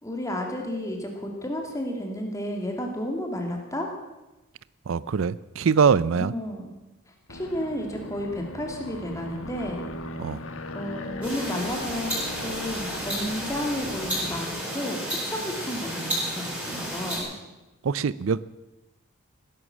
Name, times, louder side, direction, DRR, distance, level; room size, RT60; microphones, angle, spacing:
voice 1, 0.0-3.9 6.1-6.8 7.1-9.9 10.7-12.1 12.4-17.3, left 1 dB, 15° left, 2 dB, 2.8 m, -32 dB
voice 2, 4.9-6.3 10.2-10.4 17.8-18.4, right 6 dB, 70° right, 19 dB, 0.4 m, -23 dB
Aircraft, 7.3-14.6, left 2 dB, 80° left, 1.7 m, -39 dB
sound 1, 11.2-17.2, equal, 5° right, 7.1 m, -32 dB
17.5 x 11.0 x 7.3 m, 1.0 s
head